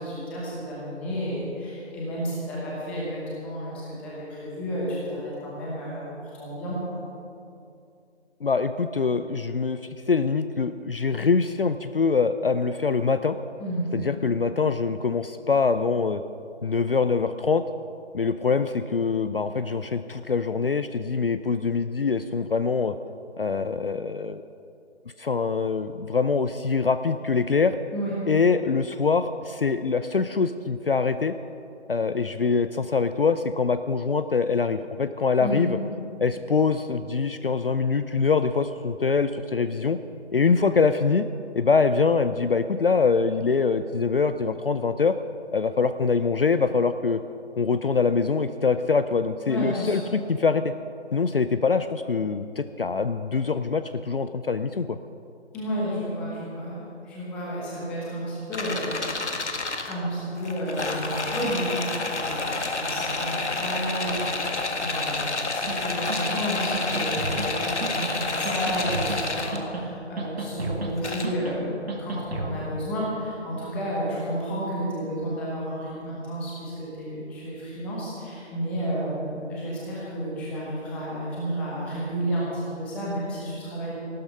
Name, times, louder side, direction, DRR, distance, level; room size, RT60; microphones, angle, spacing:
voice 1, 0.0-6.0 6.3-7.0 13.6-14.0 27.9-28.1 35.4-35.7 49.5-50.0 55.5-59.0 59.3-84.0, equal, 5° left, -6 dB, 1.0 m, -31 dB
voice 2, 8.4-9.8 10.1-13.4 13.9-16.2 16.6-17.6 18.1-23.0 23.4-24.4 25.2-27.8 28.3-31.3 31.9-35.8 36.2-40.0 40.3-41.3 41.5-45.2 45.5-47.2 47.6-50.7 51.1-55.0, left 5 dB, 55° left, 11 dB, 0.5 m, -24 dB
sound 1, 58.5-59.9 60.4-69.6 71.0-71.3, left 3 dB, 70° left, 1.8 m, -29 dB
sound 2, 65.7-65.8 66.1-66.4 66.7-67.5 67.8-68.1 68.4-69.2 69.5-69.9 70.2-70.9 71.2-71.6 71.9-72.5, right 2 dB, 60° right, 2.2 m, -32 dB
14.5 x 12.5 x 5.5 m, 2.5 s
figure-of-eight pair, 155°, 35 cm